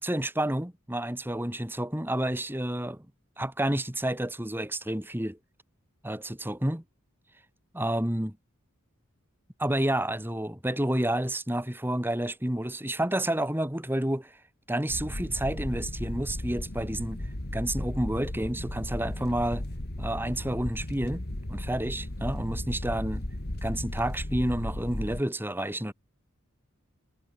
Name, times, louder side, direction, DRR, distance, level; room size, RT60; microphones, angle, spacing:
voice 1, 0.0-3.1 3.4-5.4 6.0-6.8 7.7-8.4 9.6-14.3 14.7-17.2 17.5-19.6 20.0-23.2 23.6-25.9, right 1 dB, 10° right, 2.2 m, -30 dB
sound 1, 14.9-25.2, left 1 dB, 50° left, 2.0 m, -35 dB
head